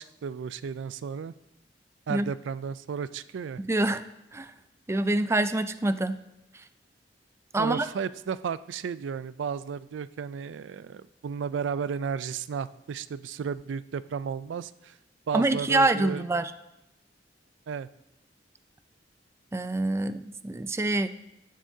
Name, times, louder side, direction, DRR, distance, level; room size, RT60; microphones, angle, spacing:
voice 1, 0.0-1.3 2.1-3.6 7.6-15.0 15.3-16.2 17.7-17.9, right 6 dB, 90° right, 16 dB, 0.4 m, -33 dB
voice 2, 3.6-4.0 4.3-4.5 4.9-6.2 7.5-7.9 15.3-16.5 19.5-21.1, right 2 dB, 15° right, 12 dB, 0.4 m, -26 dB
15.5 x 11.5 x 2.7 m, 0.90 s
head